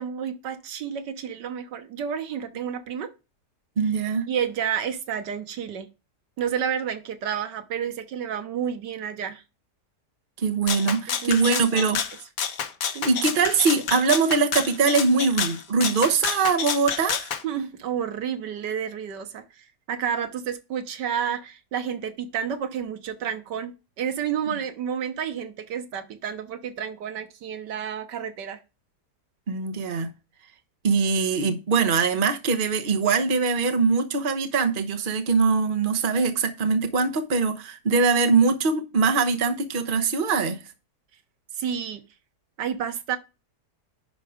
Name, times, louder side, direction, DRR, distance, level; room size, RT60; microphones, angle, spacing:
voice 1, 0.0-3.1 4.3-5.9 6.4-9.4 11.1-11.9 12.9-13.1 17.4-28.6 41.6-42.0 42.6-43.2, right 8 dB, 85° right, 1.7 m, -30 dB
voice 2, 3.8-4.3 10.4-12.0 13.0-17.3 29.5-30.1 30.8-40.6, right 4 dB, 35° right, 1.1 m, -22 dB
Rattle (instrument), 10.7-17.4, left 7 dB, 60° left, 1.3 m, -29 dB
10.5 x 4.6 x 5.0 m
omnidirectional pair, 1.8 m